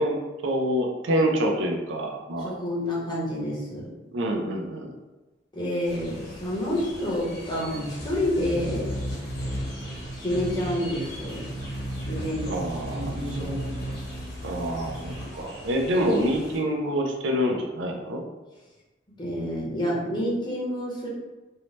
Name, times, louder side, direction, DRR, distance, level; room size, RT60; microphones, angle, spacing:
voice 1, 0.0-2.6 4.1-4.9 12.4-13.5 14.4-18.2, equal, 75° right, 2 dB, 0.4 m, -27 dB
voice 2, 2.4-3.9 5.5-9.0 10.2-11.5 12.0-12.6 12.9-13.6 19.2-21.1, left 1 dB, 25° left, -6 dB, 0.8 m, -29 dB
sound 1, 5.8-16.6, equal, 60° left, 1.1 m, -35 dB
2.6 x 2.0 x 3.1 m, 1.1 s
head